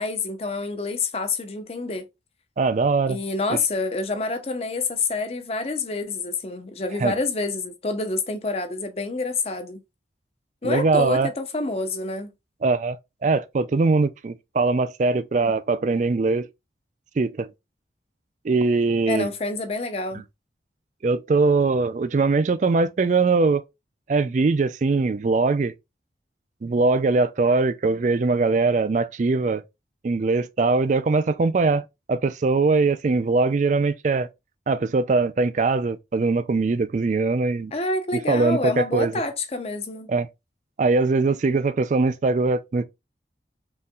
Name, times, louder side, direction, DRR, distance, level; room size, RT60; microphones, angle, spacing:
voice 1, 0.0-2.0 3.1-9.8 10.6-12.3 15.4-15.5 19.1-20.2 37.7-40.1, left 3 dB, 35° left, 0.6 m, -27 dB
voice 2, 2.6-3.2 3.5-3.6 7.0-7.1 10.6-11.3 12.6-16.5 17.2-17.5 18.4-19.3 21.0-23.6 24.1-25.7 26.6-29.6 30.0-34.3 34.7-37.7 38.1-39.2 40.1-40.3 40.8-42.8, right 3 dB, 40° right, 0.3 m, -21 dB
5.4 x 2.5 x 2.3 m
head